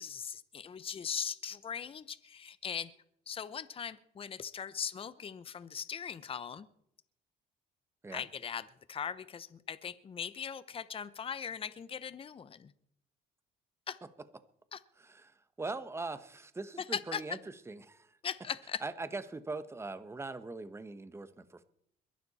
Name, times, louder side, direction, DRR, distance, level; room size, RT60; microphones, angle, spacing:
voice 1, 0.0-2.9 3.3-6.7 8.1-12.7 13.9-14.0 14.7-14.8 16.9-17.2 18.2-18.8, left 7 dB, 35° left, 15 dB, 0.9 m, -39 dB
voice 2, 15.0-17.4 17.7-18.1 18.8-21.6, right 3 dB, 15° right, 12 dB, 1.2 m, -41 dB
22.0 x 12.0 x 4.3 m, 0.70 s
cardioid pair, 110°, 17 cm